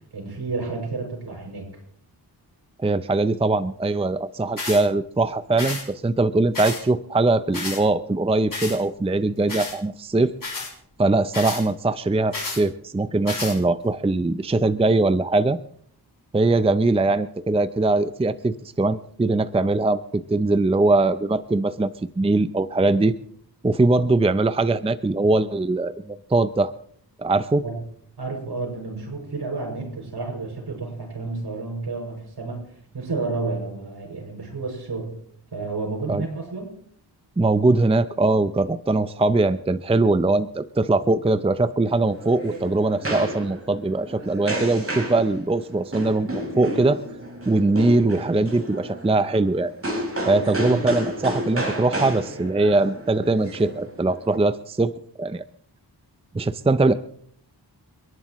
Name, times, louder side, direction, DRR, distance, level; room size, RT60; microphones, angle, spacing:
voice 1, 0.1-1.7 27.6-27.7 28.2-32.6 32.9-35.1 35.5-36.7 50.3-50.9, right 3 dB, 70° right, 0 dB, 6.5 m, -31 dB
voice 2, 2.8-10.3 11.0-15.6 16.3-21.9 22.2-23.2 23.6-26.7 27.2-27.6 36.1-36.3 37.4-47.0 47.4-49.7 50.2-54.9 55.2-55.4 56.3-56.9, right 2 dB, 15° right, 12 dB, 0.5 m, -21 dB
sound 1, 4.6-4.8 5.6-5.8 6.5-6.8 7.5-7.8 8.5-8.8 9.5-9.8 10.4-10.7 11.3-11.6 12.3-12.6 13.3-13.6, left 3 dB, 50° left, 6.8 m, -31 dB
sound 2, 41.9-54.3, right 1 dB, 35° right, 4.2 m, -32 dB
30.0 x 11.0 x 3.1 m, 0.63 s
wide cardioid pair, 105°, 41 cm